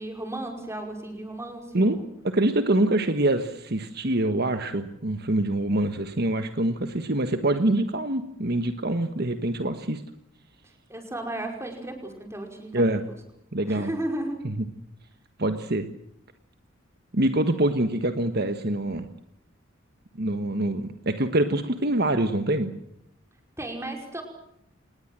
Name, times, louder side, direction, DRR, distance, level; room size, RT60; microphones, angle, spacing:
voice 1, 0.0-2.1 10.6-13.0 13.7-14.4 23.6-24.2, right 1 dB, 15° right, 3 dB, 5.3 m, -34 dB
voice 2, 2.2-10.0 12.7-13.0 13.5-13.9 14.4-14.5 15.4-15.9 17.1-19.1 20.2-22.7, right 1 dB, 50° right, 8 dB, 1.4 m, -25 dB
27.0 x 20.0 x 7.6 m, 0.75 s
head